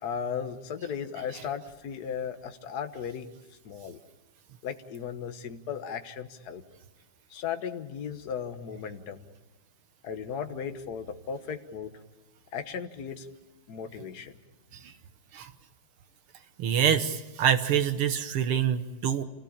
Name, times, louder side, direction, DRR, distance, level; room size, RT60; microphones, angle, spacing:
voice 1, 0.0-3.3 3.6-4.0 4.6-6.6 7.3-9.3 10.0-12.0 12.5-13.3 13.7-14.3, left 7 dB, 50° left, 7 dB, 1.7 m, -36 dB
voice 2, 16.6-19.2, right 9 dB, 90° right, 9 dB, 2.1 m, -26 dB
28.0 x 18.5 x 8.7 m, 1.1 s
omnidirectional pair, 2.4 m